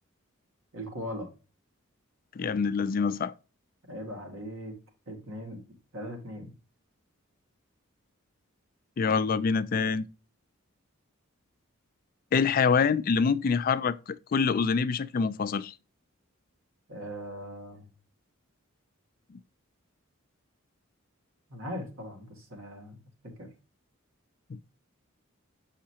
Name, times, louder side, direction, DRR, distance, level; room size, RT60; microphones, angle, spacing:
voice 1, 0.7-1.3 3.9-4.8 5.1-5.6 5.9-6.5 16.9-17.9 21.5-23.0 23.2-23.5, equal, 80° right, 2.1 m, -39 dB
voice 2, 2.4-3.3 9.0-10.1 12.3-15.7 24.5-24.6, left 5 dB, 40° left, 0.3 m, -26 dB
7.2 x 5.7 x 2.9 m
head